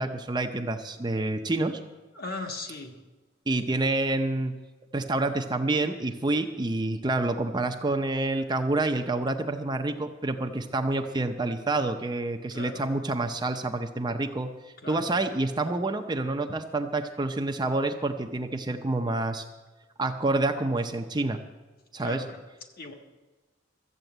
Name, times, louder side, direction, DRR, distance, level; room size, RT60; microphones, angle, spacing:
voice 1, 0.0-1.8 3.5-4.6 4.9-14.5 14.9-19.4 20.0-21.4 21.9-22.2, right 2 dB, 20° right, 5 dB, 0.6 m, -28 dB
voice 2, 2.1-3.0 12.5-12.9 14.8-15.1 22.0-22.4 22.8-22.9, left 3 dB, 50° left, 3 dB, 1.5 m, -38 dB
13.5 x 8.2 x 7.9 m, 1.3 s
head